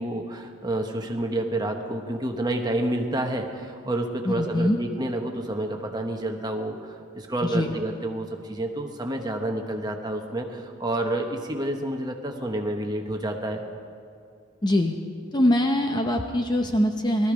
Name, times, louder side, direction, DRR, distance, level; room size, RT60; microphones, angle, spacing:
voice 1, 0.0-13.6, right 1 dB, 20° right, 3 dB, 1.1 m, -29 dB
voice 2, 4.3-4.8 7.4-7.7 14.6-14.9 15.3-17.3, left 1 dB, 20° left, 4 dB, 0.6 m, -23 dB
18.0 x 13.5 x 5.1 m, 2.4 s
head